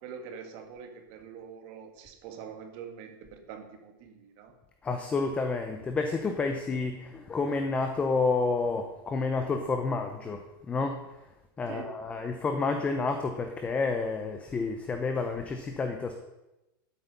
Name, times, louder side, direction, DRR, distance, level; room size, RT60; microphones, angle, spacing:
voice 1, 0.0-4.5 11.7-11.9, right 7 dB, 40° right, 5 dB, 1.7 m, -44 dB
voice 2, 4.8-11.0 11.6-16.1, left 4 dB, 10° left, 6 dB, 0.7 m, -30 dB
12.5 x 8.3 x 5.4 m, 0.95 s
supercardioid pair, 165°, 12 cm